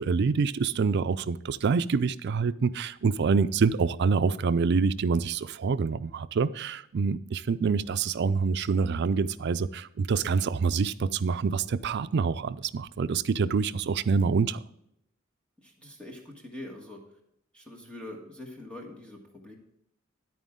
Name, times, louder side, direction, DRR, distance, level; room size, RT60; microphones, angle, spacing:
voice 1, 0.0-14.6, right 5 dB, 55° right, 13 dB, 0.4 m, -26 dB
voice 2, 15.6-17.0 17.5-19.6, left 1 dB, 5° left, 0 dB, 1.5 m, -44 dB
9.9 x 9.3 x 3.7 m, 0.78 s
head